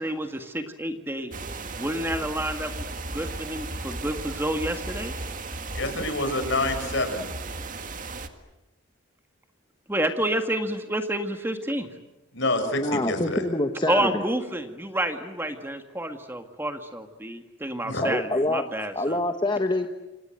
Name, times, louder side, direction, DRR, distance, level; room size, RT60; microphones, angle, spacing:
voice 1, 0.0-1.3 1.8-2.9 3.1-5.1 9.9-11.9 13.9-19.2, right 1 dB, 10° right, 6 dB, 1.9 m, -29 dB
sound 1, 1.3-8.3, right 3 dB, 40° right, 2.1 m, -35 dB
voice 2, 5.7-7.3 12.3-13.4 17.8-18.1, left 2 dB, 60° left, 7 dB, 6.2 m, -27 dB
voice 3, 12.8-14.2 18.0-18.7 18.9-19.9, left 2 dB, 20° left, 6 dB, 1.2 m, -26 dB
29.0 x 26.0 x 7.8 m, 1.0 s
head